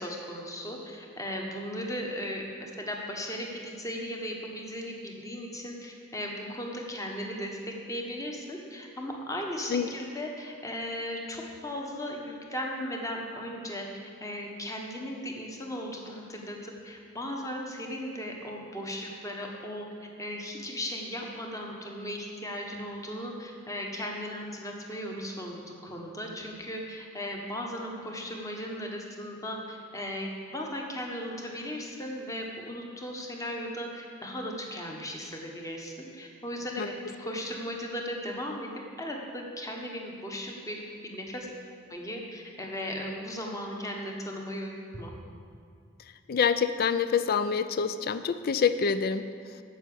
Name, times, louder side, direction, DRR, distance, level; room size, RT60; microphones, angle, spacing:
voice 1, 0.0-36.9 37.2-38.7 39.0-41.5 41.9-45.1, equal, 15° left, 0 dB, 1.4 m, -37 dB
voice 2, 46.3-49.6, left 6 dB, 50° left, 12 dB, 0.4 m, -27 dB
9.1 x 7.1 x 8.6 m, 2.2 s
head